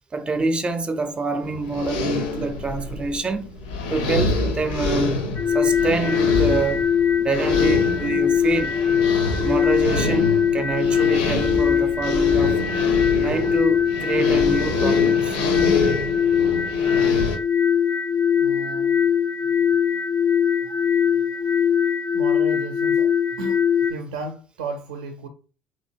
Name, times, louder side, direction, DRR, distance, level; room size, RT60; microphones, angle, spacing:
voice 1, 0.1-3.6 3.9-5.2 5.5-6.9 7.2-8.8 9.4-12.6 13.2-15.4 16.8-17.1, right 3 dB, 25° right, 0.5 m, -26 dB
sound 1, 1.4-17.4, left 2 dB, 80° left, 0.6 m, -27 dB
sound 2, 5.4-23.9, left 8 dB, 35° left, 0.4 m, -21 dB
voice 2, 18.3-19.0 22.1-23.1 23.4-23.6 23.9-25.3, right 3 dB, 80° right, 0.4 m, -34 dB
2.9 x 2.8 x 2.7 m
hypercardioid pair, 65°, 4 cm